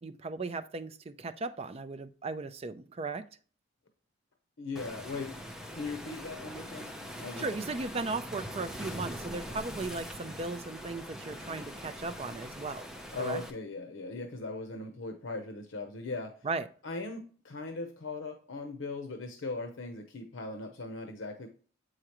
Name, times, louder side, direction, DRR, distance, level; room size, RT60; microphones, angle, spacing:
voice 1, 0.0-3.2 7.4-12.9 13.2-13.4 16.4-16.7, right 3 dB, 30° right, 10 dB, 0.4 m, -37 dB
voice 2, 4.6-5.4 5.7-6.9 7.2-7.6 9.4-9.6 13.1-16.3 16.8-21.5, left 3 dB, 85° left, 6 dB, 0.8 m, -39 dB
Waves surf, 4.8-13.5, equal, 5° right, 0.7 m, -42 dB
7.7 x 4.9 x 3.0 m, 0.41 s
head